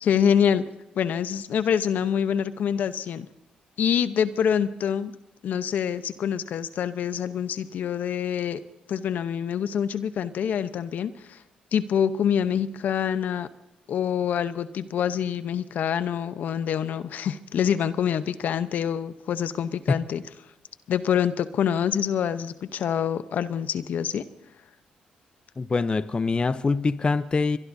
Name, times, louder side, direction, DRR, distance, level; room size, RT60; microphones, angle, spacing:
voice 1, 0.0-0.6 1.0-3.3 3.8-5.1 5.4-8.6 8.9-11.4 11.7-13.5 13.9-20.2 20.9-24.2, left 8 dB, 70° left, 12 dB, 0.8 m, -26 dB
voice 2, 25.6-27.6, left 4 dB, 35° left, 14 dB, 0.7 m, -24 dB
22.5 x 22.5 x 2.7 m, 0.89 s
supercardioid pair, 60°, 3 cm